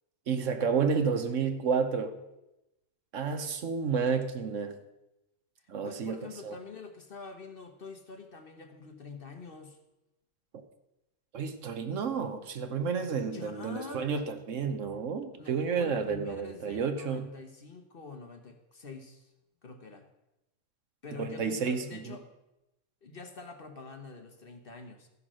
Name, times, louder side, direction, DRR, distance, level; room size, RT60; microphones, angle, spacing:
voice 1, 0.3-2.2 3.1-4.8 5.7-6.5 11.3-17.3 21.2-22.2, right 5 dB, 55° right, 9 dB, 1.1 m, -31 dB
voice 2, 5.6-9.8 13.3-14.1 15.3-19.3 19.6-20.1 21.0-22.3 23.0-25.1, left 4 dB, 40° left, 5 dB, 1.0 m, -45 dB
14.0 x 5.9 x 6.2 m, 0.94 s
omnidirectional pair, 1.7 m